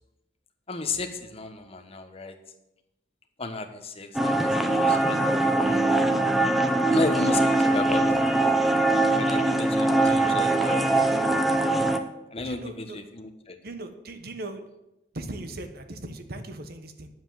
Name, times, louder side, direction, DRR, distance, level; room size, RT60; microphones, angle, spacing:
voice 1, 0.7-2.4 3.4-5.8 6.8-8.1 9.1-11.3 12.3-13.6, left 3 dB, 35° left, 6 dB, 1.3 m, -34 dB
sound 1, 4.1-12.0, right 2 dB, ahead, 0.8 m, -22 dB
voice 2, 12.4-13.0 13.6-14.7 15.1-17.1, right 2 dB, 55° right, 8 dB, 1.2 m, -38 dB
9.7 x 7.8 x 7.7 m, 0.91 s
head